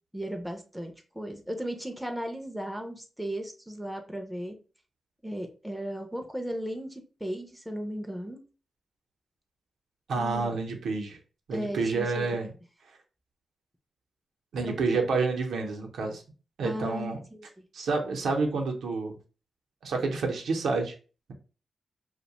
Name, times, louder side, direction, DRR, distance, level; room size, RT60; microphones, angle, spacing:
voice 1, 0.1-4.6 5.2-8.4 10.1-10.6 11.5-12.3 14.6-15.0 16.6-17.6, equal, 5° right, 3 dB, 0.3 m, -36 dB
voice 2, 10.1-11.2 11.5-12.5 14.5-16.2 16.6-17.2 17.7-19.2 19.8-20.9, right 4 dB, 85° right, 3 dB, 0.6 m, -29 dB
2.7 x 2.1 x 2.8 m, 0.35 s
wide cardioid pair, 170°, 0 cm